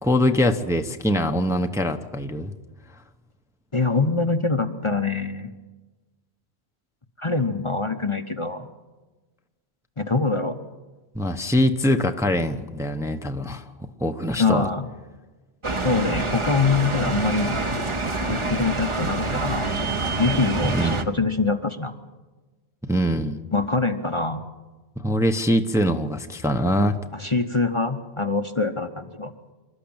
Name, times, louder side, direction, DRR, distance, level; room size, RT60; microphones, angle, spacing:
voice 1, 0.0-2.5 11.1-13.6 14.0-14.7 20.7-21.0 22.8-23.4 25.0-27.0, equal, 5° right, 6 dB, 0.9 m, -23 dB
voice 2, 3.7-5.5 7.2-8.7 10.0-10.6 14.4-14.9 15.8-17.6 18.2-19.7 20.2-22.0 23.5-24.4 27.1-29.3, left 3 dB, 30° left, 7 dB, 1.0 m, -24 dB
sound 1, 15.6-21.0, right 2 dB, 30° right, 1.1 m, -26 dB
26.0 x 13.0 x 8.8 m, 1.2 s
omnidirectional pair, 1.1 m